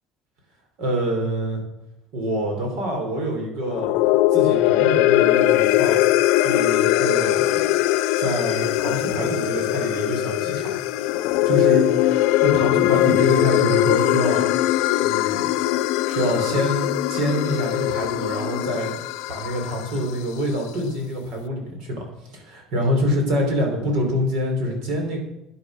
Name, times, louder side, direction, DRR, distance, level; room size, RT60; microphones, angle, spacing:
voice 1, 0.8-1.6 2.1-3.9 4.3-6.0 6.3-7.6 8.2-10.8 11.4-11.9 12.4-14.4 15.0-15.5 16.1-18.9 19.3-22.0 22.3-25.2, equal, 60° right, 2 dB, 4.8 m, -25 dB
sound 1, 3.6-20.1, left 15 dB, 80° left, 0.7 m, -21 dB
13.5 x 9.8 x 6.7 m, 0.87 s
cardioid pair, 170°, 0 cm